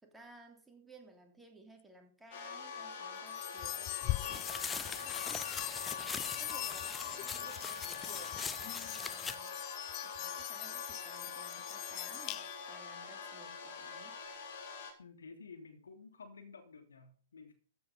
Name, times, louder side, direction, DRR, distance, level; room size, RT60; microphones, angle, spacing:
voice 1, 0.0-5.5 5.9-8.6 8.9-9.6 10.0-14.2, right 2 dB, 5° right, 2 dB, 3.0 m, -57 dB
sound 1, 2.3-14.9, left 6 dB, 50° left, 3.8 m, -44 dB
sound 2, 3.3-12.8, left 17 dB, 35° left, 0.5 m, -42 dB
sound 3, 4.3-9.4, left 5 dB, 10° left, 0.9 m, -42 dB
voice 2, 15.0-17.5, left 4 dB, 70° left, 5 dB, 3.1 m, -52 dB
14.5 x 8.2 x 5.6 m, 0.42 s
figure-of-eight pair, 110°, 0 cm